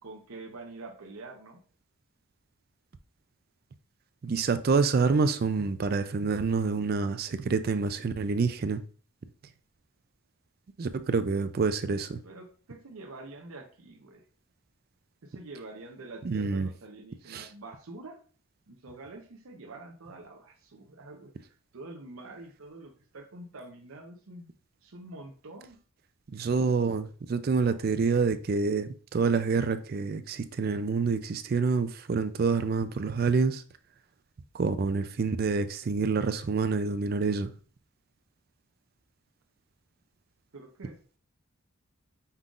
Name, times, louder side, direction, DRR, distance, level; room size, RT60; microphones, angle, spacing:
voice 1, 0.0-1.6 12.2-14.2 15.2-18.2 18.7-24.5 24.8-25.8 40.5-41.2, right 2 dB, 75° right, 0.7 m, -46 dB
voice 2, 4.2-8.8 10.8-12.2 16.2-16.7 17.3-17.5 26.3-33.6 34.5-37.5, right 4 dB, 45° right, 0.3 m, -27 dB
5.5 x 3.8 x 2.4 m
head